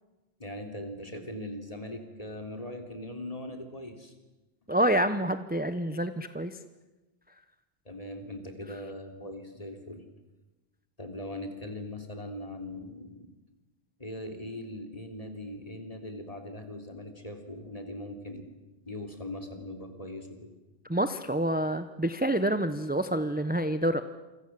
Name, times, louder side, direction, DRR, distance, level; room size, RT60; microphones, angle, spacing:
voice 1, 0.4-4.1 7.9-10.0 11.0-13.3 14.0-18.6 18.9-20.5, left 1 dB, 35° left, 5 dB, 3.5 m, -40 dB
voice 2, 4.7-6.6 20.9-24.0, right 1 dB, 10° right, 10 dB, 0.9 m, -27 dB
28.5 x 25.0 x 7.6 m, 1.1 s
omnidirectional pair, 1.1 m